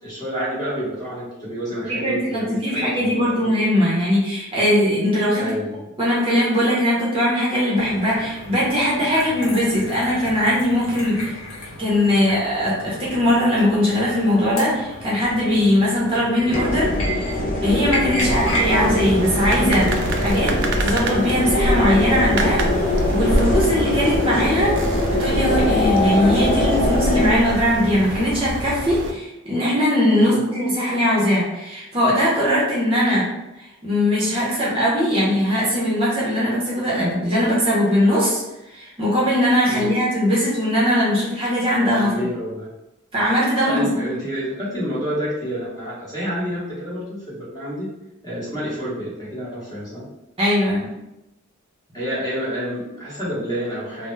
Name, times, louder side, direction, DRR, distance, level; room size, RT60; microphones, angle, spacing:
voice 1, 0.0-3.5 5.4-5.9 18.2-18.4 30.2-30.4 39.7-39.9 41.9-42.7 43.7-47.9 48.2-50.1 51.9-54.1, equal, 20° left, -9 dB, 1.0 m, -29 dB
voice 2, 1.9-5.4 6.0-11.3 11.8-17.3 17.6-20.5 20.8-22.6 23.1-24.8 25.1-33.3 33.6-38.4 38.7-42.1 43.1-44.0 50.4-50.9, equal, 25° right, -7 dB, 0.7 m, -20 dB
sound 1, 7.8-20.3, equal, 75° left, 0.7 m, -33 dB
sound 2, 16.5-27.3, left 2 dB, 40° left, 0.4 m, -22 dB
sound 3, 18.2-29.1, right 1 dB, 60° right, 0.3 m, -26 dB
2.3 x 2.0 x 3.1 m, 0.95 s
head